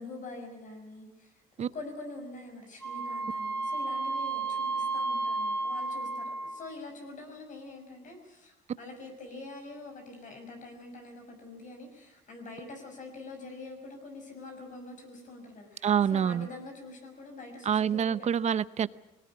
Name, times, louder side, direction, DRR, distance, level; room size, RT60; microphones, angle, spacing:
voice 1, 0.0-18.3, left 2 dB, 50° left, 4 dB, 6.1 m, -45 dB
Wind instrument woodwind instrument, 2.8-6.7, right 3 dB, 5° left, 5.5 m, -32 dB
voice 2, 15.8-16.5 17.6-18.9, right 8 dB, 40° right, 17 dB, 0.8 m, -26 dB
21.5 x 18.0 x 9.8 m, 0.89 s
cardioid pair, 110°, 17 cm